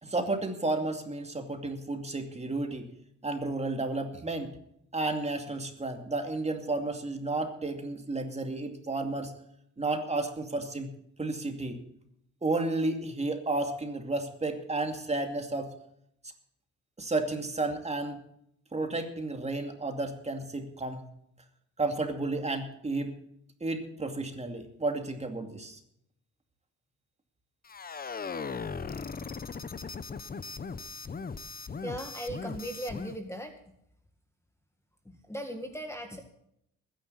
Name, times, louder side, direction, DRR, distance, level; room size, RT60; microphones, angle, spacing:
voice 1, 0.0-2.9 3.2-4.6 4.9-9.3 9.8-10.9 11.2-11.8 12.4-15.7 17.0-18.2 18.7-21.0 21.8-23.2 23.6-25.8, right 2 dB, 20° right, 5 dB, 2.5 m, -32 dB
sound 1, 27.6-33.2, left 5 dB, 30° left, 0.9 m, -38 dB
voice 2, 31.8-33.7 35.1-36.2, equal, 10° left, 5 dB, 1.8 m, -38 dB
21.0 x 10.0 x 4.1 m, 0.74 s
cardioid pair, 105°, 30 cm